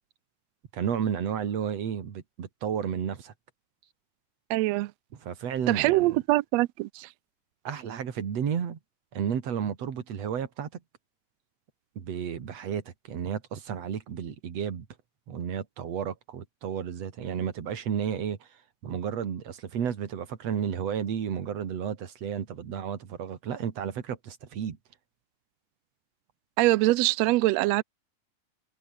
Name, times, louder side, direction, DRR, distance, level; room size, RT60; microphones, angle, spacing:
voice 1, 0.7-3.3 5.2-6.2 7.7-8.8 9.1-10.8 12.0-14.9 15.3-18.5 18.8-24.8, right 8 dB, 55° right, 3.3 m, -32 dB
voice 2, 4.5-4.9 5.7-7.1 26.6-27.8, right 19 dB, 85° right, 1.5 m, -23 dB
omnidirectional pair, 3.7 m